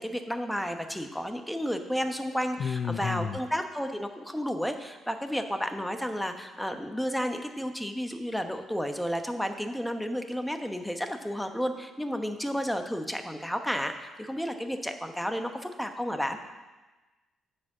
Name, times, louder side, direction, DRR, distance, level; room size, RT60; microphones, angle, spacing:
voice 1, 0.0-16.4, equal, ahead, 6 dB, 0.9 m, -32 dB
voice 2, 2.6-3.4, left 6 dB, 55° left, 10 dB, 0.4 m, -30 dB
9.7 x 5.1 x 7.7 m, 1.2 s
cardioid pair, 90°, 0 cm